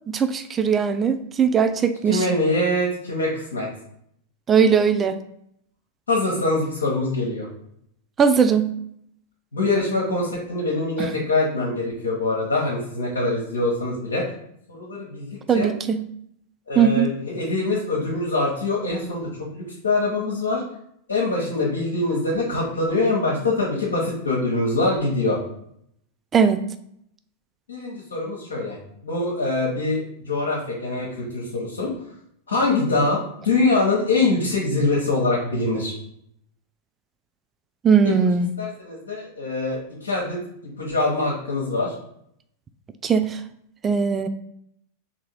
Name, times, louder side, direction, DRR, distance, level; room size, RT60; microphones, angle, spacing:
voice 1, 0.1-2.2 4.5-5.2 8.2-8.7 11.0-11.1 15.5-16.0 16.8-17.1 26.3-26.6 37.8-38.5 43.0-43.4 43.8-44.3, right 6 dB, 20° right, 9 dB, 0.3 m, -19 dB
voice 2, 2.1-3.7 6.1-7.5 9.5-14.2 14.7-15.7 16.7-20.6 21.1-25.4 27.7-28.8 29.0-31.9 32.5-35.9 38.0-38.1 38.6-40.4 40.8-41.9, left 2 dB, 70° left, -3 dB, 1.1 m, -24 dB
3.7 x 2.9 x 4.4 m, 0.71 s
figure-of-eight pair, 90°, 0 cm